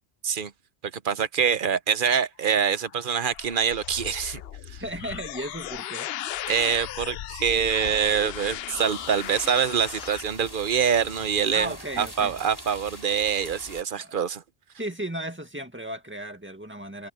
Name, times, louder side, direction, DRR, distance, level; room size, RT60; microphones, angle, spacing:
voice 1, 1.0-4.4 4.7-4.8 6.5-14.4, right 7 dB, 55° right, 1.0 m, -25 dB
sound 1, 2.5-10.2, left 11 dB, 70° left, 0.8 m, -37 dB
voice 2, 4.8-6.1 11.5-12.3 14.0-14.2 14.8-17.1, right 1 dB, 10° right, 2.0 m, -35 dB
sound 2, 8.7-13.8, left 1 dB, 20° left, 4.7 m, -44 dB
omnidirectional pair, 1.1 m